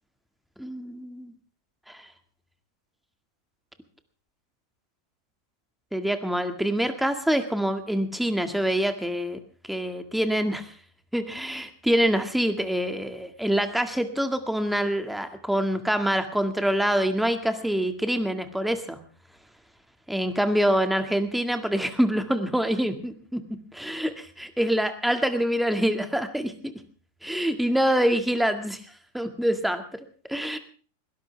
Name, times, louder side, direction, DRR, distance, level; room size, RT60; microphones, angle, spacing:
voice 1, 0.6-1.3 1.9-2.0 5.9-9.4 9.7-10.7 11.1-19.0 20.1-23.4 23.7-26.7 27.2-28.8 29.1-29.8 30.3-30.6, equal, ahead, 8 dB, 1.8 m, -25 dB
21.0 x 17.5 x 3.4 m, 0.39 s
omnidirectional pair, 1.7 m